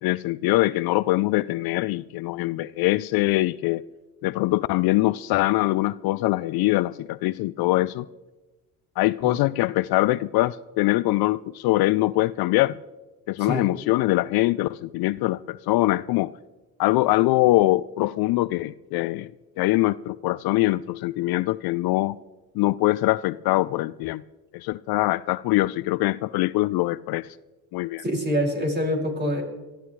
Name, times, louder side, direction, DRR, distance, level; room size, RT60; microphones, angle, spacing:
voice 1, 0.0-3.8 4.2-8.1 9.0-12.8 13.3-16.3 16.8-19.3 19.6-22.2 22.6-24.2 24.5-27.3 27.7-28.0, left 18 dB, 65° left, 0.5 m, -23 dB
voice 2, 13.4-13.7 28.0-29.4, equal, 25° right, 5.5 m, -26 dB
22.0 x 14.5 x 3.2 m
supercardioid pair, 70°, 40 cm